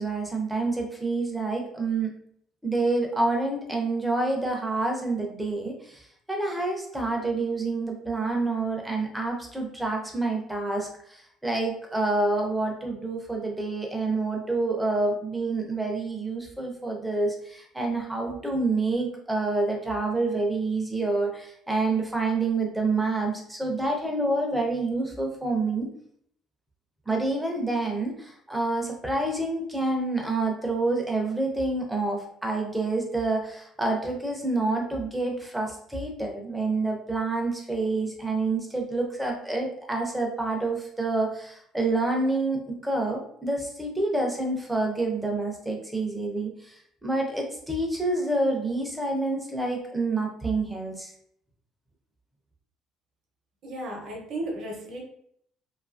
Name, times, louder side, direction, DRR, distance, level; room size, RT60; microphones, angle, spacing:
voice 1, 0.0-2.1 2.6-25.9 27.1-51.1, right 2 dB, 5° right, 0 dB, 0.4 m, -28 dB
voice 2, 53.6-55.0, right 1 dB, 45° right, 0 dB, 0.7 m, -34 dB
2.6 x 2.3 x 2.4 m, 0.67 s
cardioid pair, 170°, 0 cm